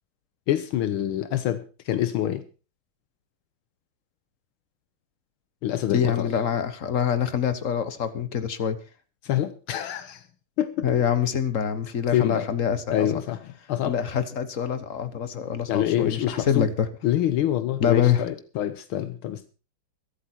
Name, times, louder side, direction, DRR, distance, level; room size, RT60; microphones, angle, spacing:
voice 1, 0.5-2.4 5.6-6.3 9.2-10.2 10.6-10.9 12.1-12.5 12.9-14.0 15.7-16.7 17.0-19.5, left 12 dB, 80° left, 11 dB, 1.7 m, -26 dB
voice 2, 5.9-8.8 10.8-13.2 13.8-16.9 17.8-18.2, left 8 dB, 45° left, 12 dB, 1.3 m, -25 dB
23.0 x 8.2 x 4.4 m, 0.35 s
omnidirectional pair, 2.3 m